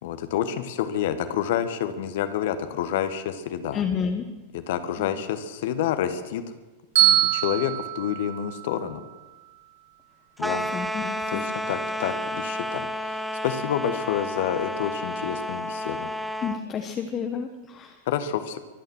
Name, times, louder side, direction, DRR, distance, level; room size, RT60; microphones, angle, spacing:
voice 1, 0.0-3.8 4.5-6.4 7.0-9.0 10.4-10.7 11.3-16.1 18.1-18.6, left 9 dB, 55° left, 10 dB, 1.3 m, -28 dB
voice 2, 3.7-4.2 5.0-5.1 10.7-11.4 16.4-18.0, left 7 dB, 25° left, 5 dB, 1.3 m, -30 dB
Bell, 7.0-9.1, right 12 dB, 60° right, 6.9 m, -24 dB
sound 1, 10.4-16.6, left 1 dB, ahead, 1.1 m, -31 dB
23.5 x 9.3 x 6.4 m, 1.2 s
figure-of-eight pair, 90°, 0 cm